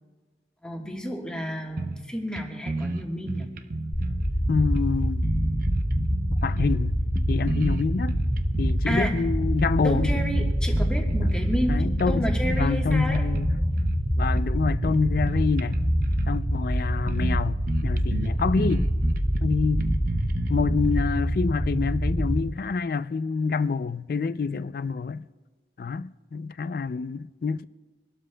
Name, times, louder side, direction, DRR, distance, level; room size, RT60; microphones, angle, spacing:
voice 1, 0.6-3.5 8.8-9.2 9.8-13.2, equal, 5° left, 1.3 m, -31 dB
sound 1, 1.8-2.1 2.4-2.5 2.7-4.3 4.7-6.8 7.2-9.1 9.4-9.6 10.0-11.7 12.0-12.6 12.9-14.0 14.4-16.4 16.8-16.9 17.1-17.4 17.7-21.0, right 2 dB, 50° right, 0.5 m, -32 dB
sound 2, 3.9-22.4, equal, 30° left, 1.4 m, -25 dB
voice 2, 4.5-5.3 6.3-7.0 7.3-8.2 8.6-10.2 11.2-11.3 11.7-13.5 14.1-15.8 16.3-18.9 19.4-19.9 20.5-25.2 25.8-27.7, left 5 dB, 55° left, 0.3 m, -27 dB
25.0 x 12.5 x 2.2 m
head